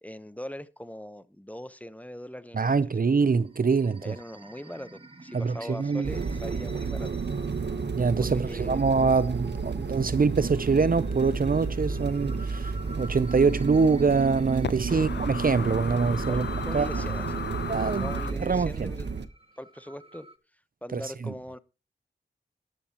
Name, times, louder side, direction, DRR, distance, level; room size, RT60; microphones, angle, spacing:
voice 1, 0.0-2.7 4.0-7.2 8.2-8.9 14.9-15.1 16.3-17.4 17.9-19.3 19.6-20.3 20.8-21.6, equal, 10° left, 1.0 m, -41 dB
voice 2, 2.5-4.1 5.3-6.1 8.0-16.5 16.7-16.9 17.7-18.1 18.4-18.9 20.9-21.3, right 4 dB, 50° right, 0.6 m, -24 dB
sound 1, 3.1-20.4, right 1 dB, 30° right, 1.7 m, -50 dB
sound 2, 6.0-19.3, right 5 dB, 65° right, 1.1 m, -31 dB
sound 3, 8.5-18.3, left 7 dB, 65° left, 0.7 m, -40 dB
13.0 x 11.5 x 3.0 m
cardioid pair, 50°, 19 cm